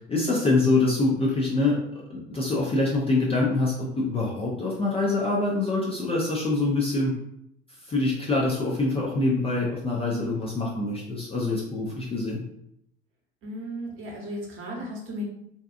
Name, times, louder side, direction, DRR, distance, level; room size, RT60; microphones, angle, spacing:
voice 1, 0.1-1.8 2.1-7.1 7.8-12.4, left 2 dB, 15° left, -4 dB, 0.5 m, -25 dB
voice 2, 13.4-15.2, equal, 35° right, -2 dB, 1.0 m, -35 dB
2.7 x 2.2 x 2.4 m, 0.77 s
hypercardioid pair, 80°, 34 cm